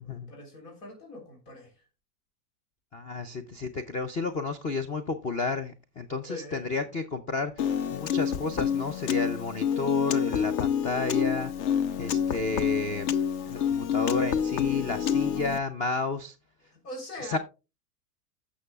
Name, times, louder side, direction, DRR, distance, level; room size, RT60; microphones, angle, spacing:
voice 1, 0.0-1.8 6.2-6.8 16.7-17.4, left 1 dB, 80° left, 3.6 m, -42 dB
voice 2, 2.9-11.5 12.0-13.1 13.5-16.3 17.3-17.4, left 3 dB, 20° left, 0.4 m, -32 dB
Piano, 7.6-15.6, left 8 dB, 45° left, 0.7 m, -28 dB
15.5 x 6.1 x 2.3 m
hypercardioid pair, 120°, 47 cm